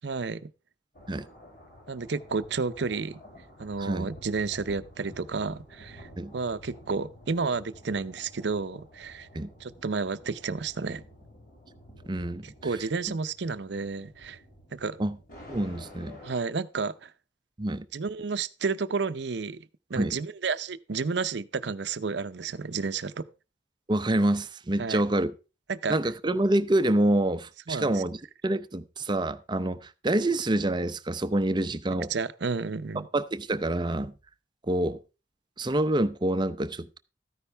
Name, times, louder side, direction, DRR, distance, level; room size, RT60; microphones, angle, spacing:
voice 1, 0.0-0.5 1.9-3.2 3.6-9.3 9.6-11.0 12.4-14.4 14.7-15.0 16.2-17.1 17.9-19.6 19.9-23.3 24.8-25.0 25.7-26.0 27.7-28.0 32.1-33.1, right 4 dB, 65° right, 0.6 m, -31 dB
sound 1, 1.0-16.4, equal, 50° left, 6.2 m, -50 dB
voice 2, 3.8-4.1 6.2-6.3 9.3-9.5 12.1-12.5 15.0-15.1 15.5-16.2 17.6-17.9 20.0-20.2 23.9-25.3 25.9-28.2 28.4-32.1 33.1-34.1 34.7-35.0 35.6-37.0, right 1 dB, 25° right, 0.6 m, -27 dB
13.5 x 10.0 x 3.4 m
head